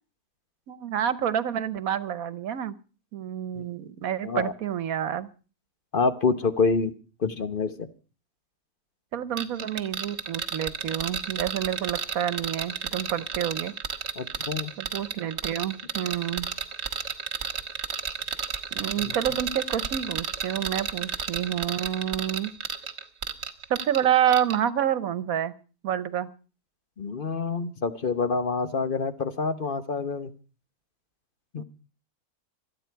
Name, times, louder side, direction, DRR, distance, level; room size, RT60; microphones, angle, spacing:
voice 1, 0.7-2.7 3.1-5.3 9.1-13.7 14.8-16.5 18.8-22.5 23.7-25.5 25.8-26.3 31.6-31.7, right 10 dB, 75° right, 15 dB, 1.3 m, -28 dB
voice 2, 5.9-6.9 7.2-7.9 14.2-14.7 19.0-19.2 27.0-30.3 31.5-31.6, left 4 dB, 40° left, 10 dB, 1.1 m, -27 dB
sound 1, 9.4-24.0 24.3-24.6, right 7 dB, 50° right, 1.5 m, -32 dB
26.5 x 9.2 x 4.6 m, 0.36 s
omnidirectional pair, 1.5 m